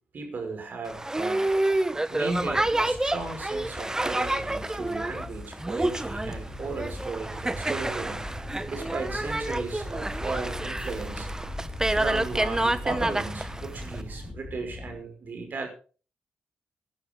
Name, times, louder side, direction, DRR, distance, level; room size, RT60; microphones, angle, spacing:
voice 1, 0.1-1.5 2.1-8.3 8.7-11.3 11.9-15.7, right 4 dB, 55° right, 4 dB, 5.3 m, -36 dB
Boat Water vehicle, 0.9-14.0, right 1 dB, 15° right, 1.1 m, -29 dB
sound 1, 2.4-15.0, left 3 dB, 35° left, 3.7 m, -43 dB
sound 2, 5.8-14.3, right 1 dB, 35° right, 6.5 m, -39 dB
18.5 x 11.5 x 3.7 m, 0.38 s
hypercardioid pair, 45°, 4 cm